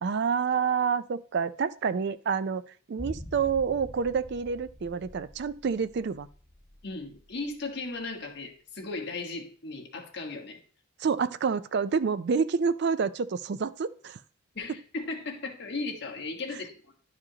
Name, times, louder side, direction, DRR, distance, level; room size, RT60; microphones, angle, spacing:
voice 1, 0.0-2.6 2.9-6.3 11.0-14.2, right 6 dB, 50° right, 14 dB, 0.3 m, -28 dB
sound 1, 3.0-7.2 7.5-7.6, left 1 dB, 20° left, 1.1 m, -45 dB
voice 2, 6.8-10.6 14.5-16.7, left 3 dB, 50° left, 1 dB, 1.4 m, -36 dB
11.0 x 4.9 x 2.8 m, 0.43 s
head